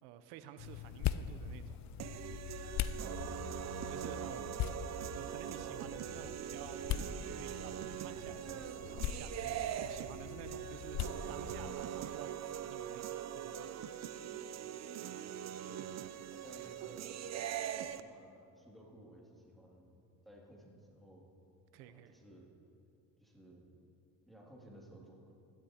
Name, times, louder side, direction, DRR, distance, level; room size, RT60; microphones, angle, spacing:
voice 1, 0.0-2.5 3.6-4.4 5.1-11.0 11.3-13.9 15.0-15.2 21.7-22.1, right 10 dB, 80° right, 10 dB, 0.8 m, -52 dB
sound 1, 0.6-11.7, left 10 dB, 40° left, 0.4 m, -42 dB
sound 2, 2.0-18.0, right 10 dB, 40° right, 0.5 m, -42 dB
voice 2, 2.8-4.9 11.1-11.6 15.7-20.0 20.3-21.3 21.9-22.5 23.2-23.6 24.3-25.2, right 1 dB, ahead, -4 dB, 2.4 m, -57 dB
15.5 x 11.5 x 2.9 m, 2.5 s
supercardioid pair, 75°, 45 cm